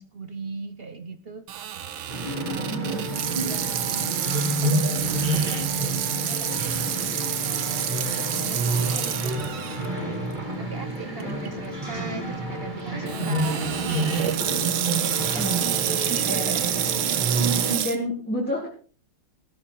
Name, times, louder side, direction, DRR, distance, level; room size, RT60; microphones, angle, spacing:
voice 1, 0.0-1.5 2.4-7.9 8.2-9.9 10.6-14.5 15.3-17.4, right 5 dB, 55° right, 10 dB, 0.6 m, -38 dB
Water tap faucet / Sink (filling or washing), 1.5-9.9 10.4-10.5 11.2-11.5 13.1-18.0, right 10 dB, 75° right, 1.8 m, -28 dB
sound 1, 2.1-17.8, right 2 dB, 20° right, 2.7 m, -29 dB
voice 2, 2.7-3.2 11.1-11.6 15.3-15.6 16.2-16.5 17.8-18.7, left 1 dB, 5° left, -3 dB, 3.4 m, -31 dB
15.5 x 12.0 x 3.8 m, 0.39 s
omnidirectional pair, 2.3 m